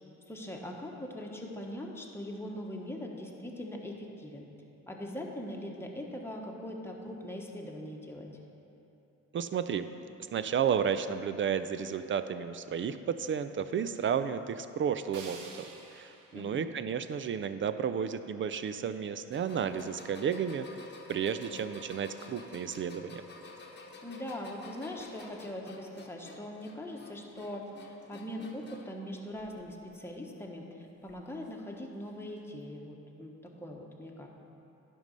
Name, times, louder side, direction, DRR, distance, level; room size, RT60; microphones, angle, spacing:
voice 1, 0.3-4.5 4.9-8.3 16.3-16.6 24.0-34.3, left 1 dB, 10° left, -1 dB, 1.2 m, -41 dB
voice 2, 9.3-9.9 10.3-15.6 15.9-20.7 21.1-23.2, right 7 dB, 40° right, 11 dB, 0.4 m, -32 dB
sound 1, 15.1-18.1, right 4 dB, 85° right, 1.0 m, -51 dB
sound 2, 19.3-29.0 29.4-30.0 31.1-31.2 32.3-32.4, left 2 dB, 35° left, 1.0 m, -51 dB
11.0 x 5.3 x 5.3 m, 2.9 s
cardioid pair, 90°, 30 cm